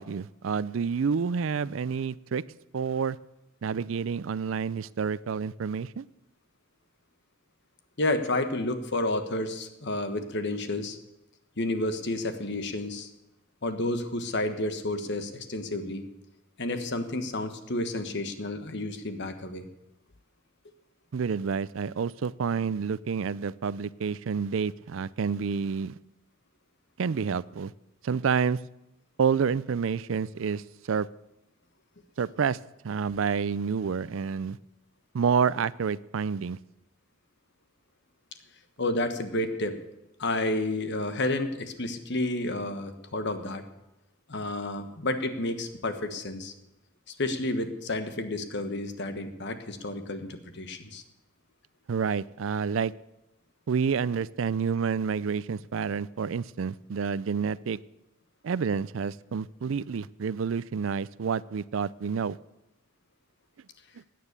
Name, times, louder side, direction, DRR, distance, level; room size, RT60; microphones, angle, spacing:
voice 1, 0.0-2.4 2.7-3.2 3.6-6.0 21.1-26.0 27.0-27.7 28.0-28.6 29.2-31.1 32.2-32.6 32.8-34.6 35.1-36.6 51.9-52.9 53.7-57.8 58.4-62.4, right 6 dB, 70° right, 20 dB, 0.4 m, -29 dB
voice 2, 8.0-11.0 11.6-13.1 13.6-16.0 16.6-19.7 38.8-39.8 40.2-43.6 44.3-46.5 47.1-51.0, left 2 dB, 55° left, 9 dB, 1.4 m, -30 dB
17.0 x 9.4 x 6.7 m, 0.91 s
head